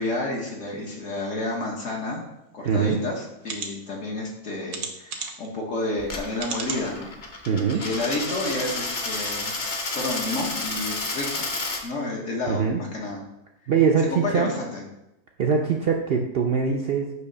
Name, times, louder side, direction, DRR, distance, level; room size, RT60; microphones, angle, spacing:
voice 1, 0.0-2.2 2.5-7.1 7.7-9.6 9.9-11.5 11.8-13.2 14.0-14.8, left 2 dB, 60° left, -1 dB, 1.3 m, -30 dB
voice 2, 2.6-3.0 7.5-7.8 12.5-12.8 13.7-14.5 15.4-17.1, right 6 dB, 65° right, 2 dB, 0.6 m, -22 dB
sound 1, 2.7-2.8 3.4-3.7 4.7-5.5 6.4-6.8 7.4-7.5 7.8-7.9, right 5 dB, 90° right, 1.3 m, -33 dB
Coin (dropping), 6.0-11.8, left 3 dB, 40° left, 0.8 m, -31 dB
6.5 x 2.9 x 5.4 m, 0.88 s
omnidirectional pair, 1.6 m